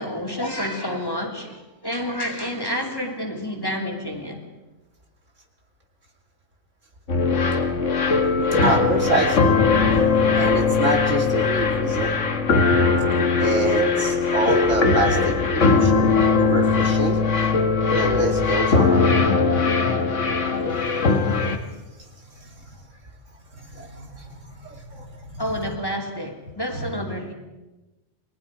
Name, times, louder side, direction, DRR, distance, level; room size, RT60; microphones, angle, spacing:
voice 1, 0.0-4.4 25.4-27.3, equal, 20° left, 1 dB, 2.9 m, -29 dB
sound 1, 7.1-21.6, left 4 dB, 75° left, 1.9 m, -20 dB
voice 2, 8.6-9.5 9.9-10.0 10.3-12.1 13.4-17.2 17.9-19.1 22.4-22.5 23.5-24.3 24.6-25.1 26.7-26.9, right 2 dB, 90° right, 2 dB, 3.1 m, -25 dB
29.0 x 20.0 x 4.8 m, 1.1 s
omnidirectional pair, 1.3 m